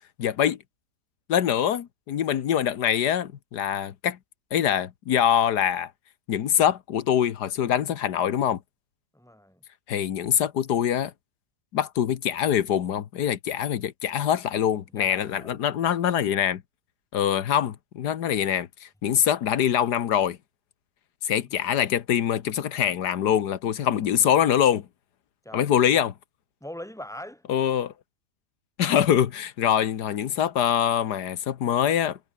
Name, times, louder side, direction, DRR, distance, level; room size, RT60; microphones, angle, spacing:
voice 1, 0.2-0.6 1.3-4.2 4.5-5.9 6.3-8.6 9.9-11.1 11.7-16.6 17.1-20.4 21.2-24.9 25.5-26.1 27.5-27.9 28.8-32.2, left 9 dB, 85° left, 1.7 m, -24 dB
voice 2, 9.1-9.6 15.0-15.6 25.4-25.7 26.6-27.4, left 1 dB, ahead, 3.7 m, -41 dB
omnidirectional pair, 1.7 m